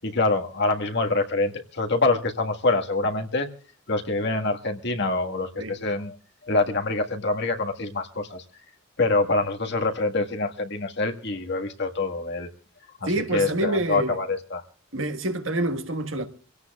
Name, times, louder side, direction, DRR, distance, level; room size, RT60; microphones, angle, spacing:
voice 1, 0.0-3.5 3.9-6.1 6.5-8.4 9.0-12.5 13.3-14.6, left 3 dB, 55° left, 1.7 m, -25 dB
voice 2, 13.0-14.2 14.9-16.3, right 2 dB, 70° right, 1.6 m, -27 dB
26.0 x 17.0 x 2.3 m
head